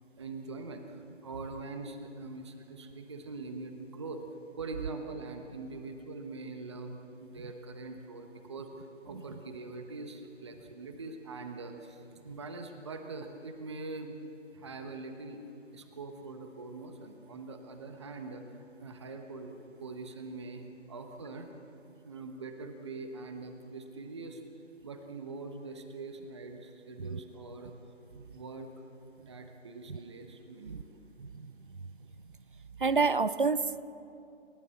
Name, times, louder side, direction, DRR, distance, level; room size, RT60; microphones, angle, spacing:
voice 1, 0.1-4.2 4.6-14.2 14.5-15.4 15.7-21.5 22.0-24.4 24.8-28.7 29.2-31.0, right 3 dB, 25° right, 5 dB, 1.1 m, -43 dB
voice 2, 32.8-33.8, right 4 dB, 45° right, 16 dB, 0.7 m, -28 dB
29.5 x 14.5 x 7.8 m, 2.8 s
figure-of-eight pair, 165°, 37 cm